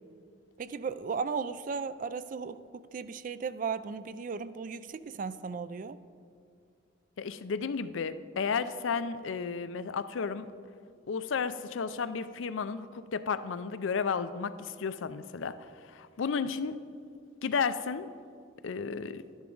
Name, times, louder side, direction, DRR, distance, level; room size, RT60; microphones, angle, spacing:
voice 1, 0.6-6.0, right 5 dB, 40° right, 0.3 m, -36 dB
voice 2, 7.2-10.5 11.1-16.8 17.4-18.1 18.6-19.2, left 5 dB, 80° left, 0.5 m, -33 dB
12.0 x 10.0 x 3.9 m
head